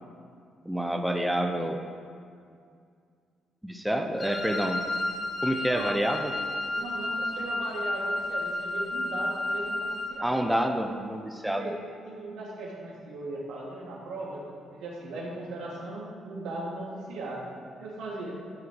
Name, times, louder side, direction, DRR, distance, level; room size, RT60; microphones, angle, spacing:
voice 1, 0.6-1.8 3.6-4.9 5.4-6.4 10.2-11.7, right 1 dB, 5° right, 4 dB, 1.0 m, -28 dB
Wind instrument woodwind instrument, 4.2-10.2, left 1 dB, 35° left, 1.8 m, -32 dB
voice 2, 5.7-6.0 6.7-10.5 11.4-11.8 12.1-17.5 17.8-18.3, right 2 dB, 85° right, -4 dB, 3.4 m, -38 dB
14.5 x 6.7 x 7.9 m, 2.3 s
cardioid pair, 90°, 0 cm